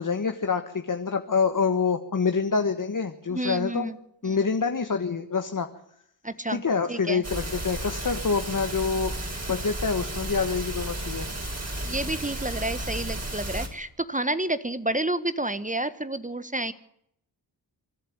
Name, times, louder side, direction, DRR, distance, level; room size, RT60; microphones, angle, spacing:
voice 1, 0.0-3.9 4.2-5.7 6.5-9.1 9.5-11.3, left 5 dB, 45° left, 7 dB, 1.6 m, -26 dB
voice 2, 3.3-4.0 4.2-4.4 6.2-6.6 6.9-7.2 11.8-16.7, right 1 dB, 15° right, 13 dB, 1.2 m, -30 dB
sound 1, 7.2-13.7, right 1 dB, 35° right, 5.6 m, -33 dB
26.0 x 11.0 x 9.6 m, 0.74 s
cardioid pair, 45°, 45 cm